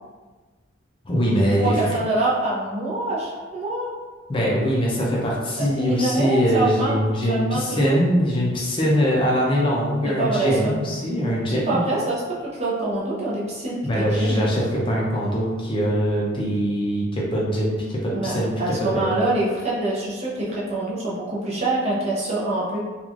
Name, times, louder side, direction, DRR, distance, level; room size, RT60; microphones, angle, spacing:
voice 1, 1.1-1.8 4.3-11.8 13.8-19.1, equal, 25° left, -4 dB, 0.5 m, -22 dB
voice 2, 1.6-3.9 5.6-7.0 7.3-8.0 10.0-10.7 11.5-14.4 18.1-22.8, right 2 dB, 35° right, -6 dB, 0.6 m, -25 dB
3.0 x 2.4 x 2.4 m, 1.4 s
head